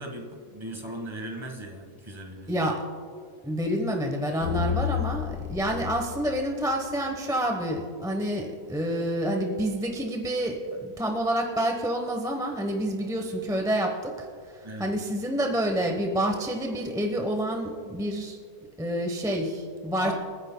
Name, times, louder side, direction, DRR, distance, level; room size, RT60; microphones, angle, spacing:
voice 1, 0.0-2.6 14.6-15.0 20.0-20.1, right 1 dB, 20° right, 2 dB, 1.4 m, -38 dB
voice 2, 2.5-2.8 3.4-14.3 14.5-18.4 18.8-20.1, right 1 dB, 5° right, 2 dB, 0.7 m, -28 dB
sound 1, 4.4-7.1, left 10 dB, 80° left, 2.7 m, -31 dB
27.0 x 9.7 x 2.2 m, 2.1 s
omnidirectional pair, 1.6 m